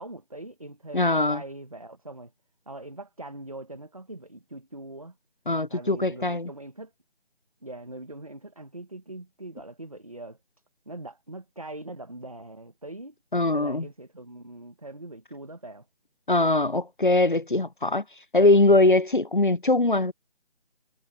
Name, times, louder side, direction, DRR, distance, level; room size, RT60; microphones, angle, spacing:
voice 1, 0.0-2.3 2.7-5.1 5.7-6.9 7.6-10.4 10.9-13.1 13.5-15.8, right 2 dB, 30° right, 1.3 m, -42 dB
voice 2, 0.9-1.4 5.5-6.5 13.3-13.9 16.3-18.0 18.3-20.1, left 2 dB, 50° left, 0.5 m, -21 dB
figure-of-eight pair, 180°, 33 cm